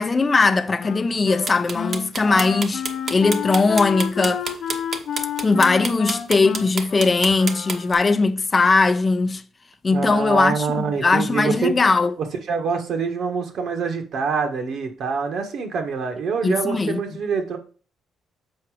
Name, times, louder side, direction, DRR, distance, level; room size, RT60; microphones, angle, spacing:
voice 1, 0.0-4.4 5.4-9.4 9.8-12.1 16.4-17.0, left 3 dB, 30° left, 0.5 m, -19 dB
Wind instrument woodwind instrument, 0.8-8.2, left 9 dB, 65° left, 0.8 m, -31 dB
sound 1, 1.4-7.9, right 4 dB, 50° right, 1.0 m, -29 dB
voice 2, 9.9-11.7 12.5-17.6, right 5 dB, 70° right, 1.5 m, -25 dB
7.1 x 4.5 x 4.8 m
cardioid pair, 90°, 0 cm